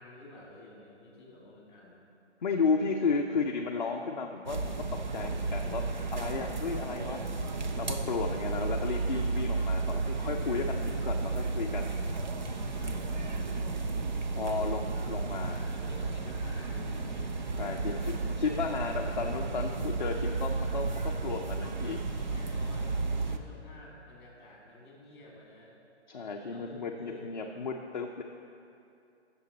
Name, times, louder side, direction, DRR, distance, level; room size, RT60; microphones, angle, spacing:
voice 1, 0.0-2.1 6.6-6.8 8.1-8.4 12.7-13.5 14.3-15.1 15.5-18.3 22.2-25.7 26.4-27.6, left 1 dB, 20° left, -2 dB, 2.0 m, -51 dB
voice 2, 2.4-4.8 5.1-7.2 7.8-11.9 14.4-15.6 17.6-18.0 18.2-22.0 26.1-28.2, left 4 dB, 40° left, 1 dB, 0.5 m, -33 dB
sound 1, 4.5-23.4, right 3 dB, 40° right, 0.6 m, -33 dB
16.0 x 6.8 x 4.0 m, 2.6 s
hypercardioid pair, 170°, 35 cm